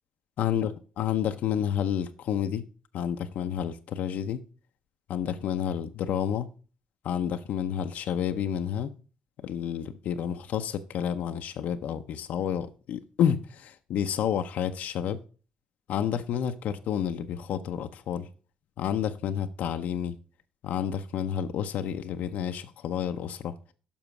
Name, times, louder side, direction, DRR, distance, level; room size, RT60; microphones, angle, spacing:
voice 1, 0.4-0.7 1.0-2.6 2.9-4.4 5.1-6.5 7.0-8.9 9.4-15.2 15.9-18.3 18.8-20.1 20.6-23.5, left 9 dB, 70° left, 0.6 m, -30 dB
7.0 x 5.5 x 5.9 m
cardioid pair, 80°, 3 cm